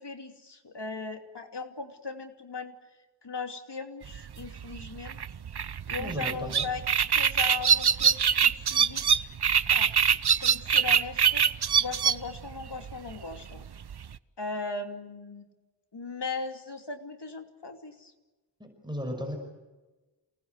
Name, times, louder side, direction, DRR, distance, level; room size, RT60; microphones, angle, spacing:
voice 1, 0.0-2.7 3.2-5.2 5.9-6.9 7.2-9.1 9.7-9.9 10.4-11.4 11.8-13.6 14.4-15.4 15.9-18.1, left 4 dB, 70° left, 5 dB, 2.9 m, -38 dB
sound 1, 4.1-14.2, right 7 dB, 65° right, 0.8 m, -25 dB
voice 2, 6.0-6.7 18.6-19.4, equal, 10° right, 3 dB, 5.7 m, -35 dB
28.0 x 19.5 x 8.1 m, 1.2 s
wide cardioid pair, 65°, 42 cm